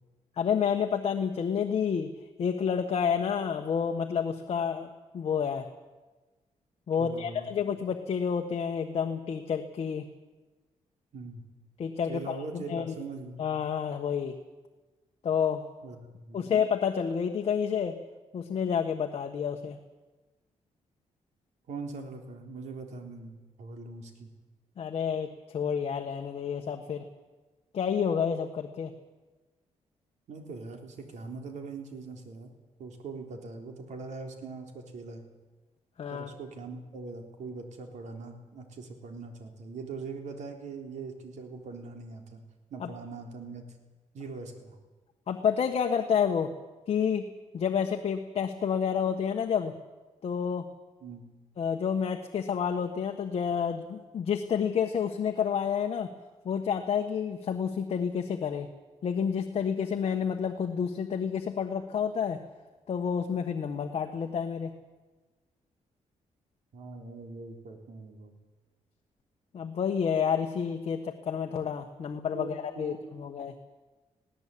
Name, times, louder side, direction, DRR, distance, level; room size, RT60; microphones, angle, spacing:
voice 1, 0.4-2.1 2.4-4.9 5.1-5.7 6.9-10.1 11.8-12.9 13.4-14.4 15.2-15.6 16.3-17.9 18.3-19.8 24.8-27.0 27.7-28.9 36.0-36.3 42.8-42.9 45.3-46.5 46.9-47.2 47.5-49.7 50.2-50.7 51.6-56.1 56.4-58.7 59.0-62.4 62.9-64.7 69.5-73.5, left 7 dB, 50° left, 4 dB, 1.3 m, -29 dB
voice 2, 7.0-7.5 11.1-11.4 12.1-13.4 15.8-16.5 21.7-24.3 30.3-32.5 32.8-35.2 36.1-42.4 42.7-43.7 44.1-44.8 51.0-51.3 66.7-68.4 72.3-73.2, right 4 dB, 70° right, 4 dB, 3.6 m, -42 dB
20.0 x 17.0 x 8.5 m, 1.2 s
cardioid pair, 140°, 13 cm